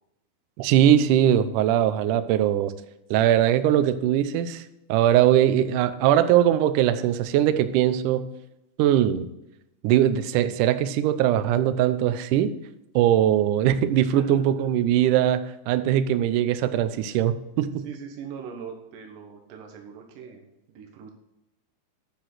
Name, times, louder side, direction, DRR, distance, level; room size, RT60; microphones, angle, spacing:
voice 1, 0.6-2.7 3.1-4.6 4.9-8.2 8.8-9.3 9.8-12.5 13.0-17.8, right 11 dB, 90° right, 11 dB, 1.8 m, -21 dB
voice 2, 17.8-21.1, right 7 dB, 65° right, 1 dB, 2.6 m, -41 dB
10.0 x 5.9 x 6.6 m, 0.89 s
omnidirectional pair, 4.6 m